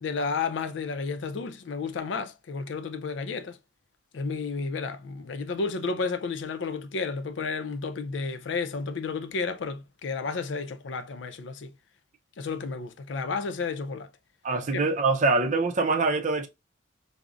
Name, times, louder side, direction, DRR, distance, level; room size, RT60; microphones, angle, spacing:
voice 1, 0.0-3.6 4.1-11.7 12.4-14.1 14.7-14.8, left 4 dB, 85° left, 0.4 m, -32 dB
voice 2, 14.4-16.5, right 3 dB, 45° right, 0.5 m, -24 dB
5.0 x 2.0 x 2.3 m
head